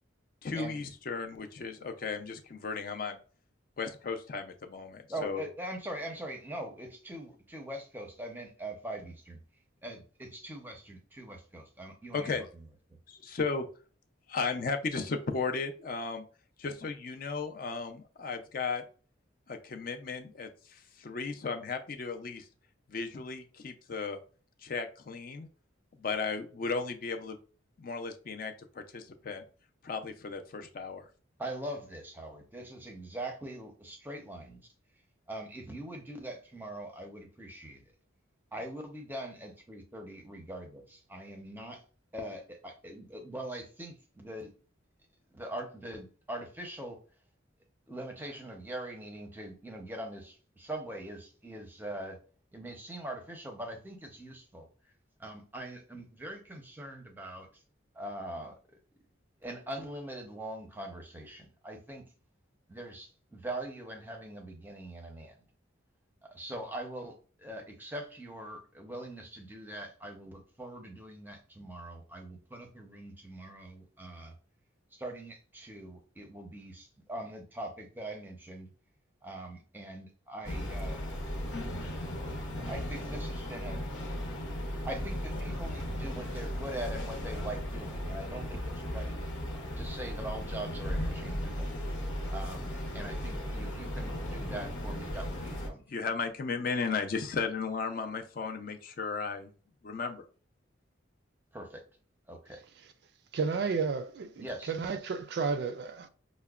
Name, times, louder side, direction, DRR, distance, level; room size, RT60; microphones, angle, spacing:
voice 1, 0.4-3.2 3.8-5.4 12.1-12.4 13.1-13.7 14.3-16.2 16.6-18.8 19.5-22.5 22.9-24.2 24.6-25.5 26.0-27.4 27.8-29.4 29.8-31.1 95.9-99.5 99.8-100.2, left 4 dB, 45° left, 0.4 m, -35 dB
voice 2, 5.1-9.4 9.8-12.3 31.4-34.6 35.3-37.8 38.5-41.8 42.1-44.5 45.3-47.0 47.9-52.2 52.5-54.7 55.2-57.6 57.9-58.8 59.4-62.0 62.7-65.4 66.3-74.3 74.9-78.7 79.2-81.1 82.6-83.8 84.7-89.1 89.8-91.7 92.3-95.8 101.5-101.8 102.3-102.6 104.4-104.7, right 1 dB, 10° right, 0.6 m, -42 dB
sound 1, 80.4-95.7, equal, 80° left, 0.9 m, -36 dB
voice 3, 103.3-106.1, right 5 dB, 55° right, 0.3 m, -32 dB
5.6 x 2.1 x 2.3 m
head